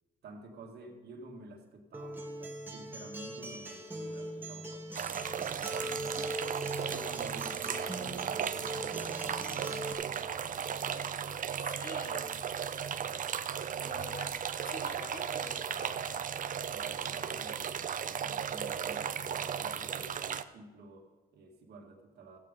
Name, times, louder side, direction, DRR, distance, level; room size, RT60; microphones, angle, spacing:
voice 1, 0.2-5.0 6.9-11.7 16.5-22.4, right 3 dB, 80° right, 1 dB, 2.0 m, -51 dB
Acoustic guitar, 1.9-9.9, right 1 dB, 10° right, 2.0 m, -41 dB
sound 1, 5.0-20.4, right 8 dB, 55° right, 0.6 m, -36 dB
voice 2, 5.8-6.2 11.6-12.3 13.1-13.3 13.8-14.4 14.6-16.2 17.0-17.7, left 4 dB, 55° left, 6 dB, 1.6 m, -48 dB
14.5 x 8.5 x 5.2 m, 1.3 s
cardioid pair, 70°, 17 cm